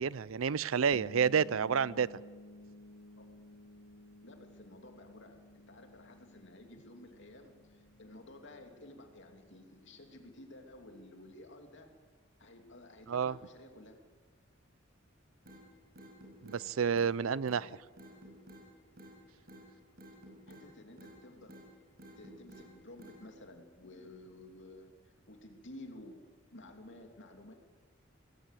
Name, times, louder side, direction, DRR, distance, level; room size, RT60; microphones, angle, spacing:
voice 1, 0.0-2.2 13.1-13.4 16.4-17.7, right 6 dB, 90° right, 0.5 m, -30 dB
sound 1, 0.9-10.5, left 1 dB, 35° left, 1.8 m, -55 dB
voice 2, 4.2-11.9 12.4-14.0 17.6-17.8 20.5-21.7 22.2-26.2 26.5-27.5, left 1 dB, 65° left, 2.8 m, -53 dB
sound 2, 15.5-15.6 16.0-16.6 17.0-17.1 17.5-17.6 18.0-18.6 19.0-19.2 19.5-19.6 20.0-20.7 21.0-21.2 21.5-21.7 22.0-22.7 23.0-23.2, equal, 50° right, 5.8 m, -52 dB
19.5 x 16.5 x 8.3 m
head